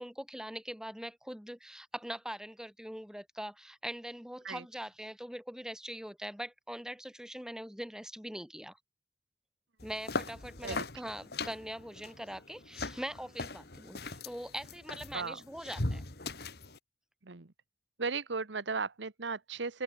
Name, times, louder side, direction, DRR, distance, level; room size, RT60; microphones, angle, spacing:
voice 1, 0.0-8.8 9.8-16.0, equal, 5° right, 6.3 m, -42 dB
sound 1, 9.8-16.8, left 2 dB, 60° left, 2.4 m, -40 dB
voice 2, 17.2-17.5 18.0-19.8, right 4 dB, 80° right, 1.2 m, -36 dB
open air
head